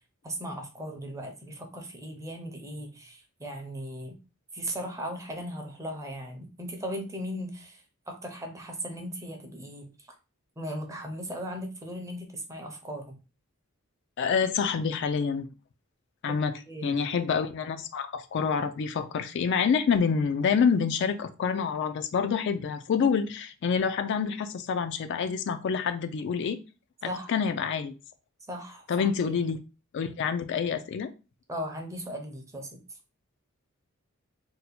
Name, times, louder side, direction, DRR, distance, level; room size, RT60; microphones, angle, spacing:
voice 1, 0.2-4.2 4.5-7.8 8.1-9.9 10.6-13.2 16.3-16.4 16.7-17.0 27.0-27.3 28.5-29.4 31.5-32.8, equal, 15° right, 3 dB, 0.6 m, -37 dB
voice 2, 14.2-15.5 16.2-16.5 16.8-26.6 27.0-27.9 28.9-29.6 29.9-31.1, left 6 dB, 55° left, 8 dB, 0.3 m, -27 dB
2.7 x 2.2 x 4.0 m, 0.30 s
head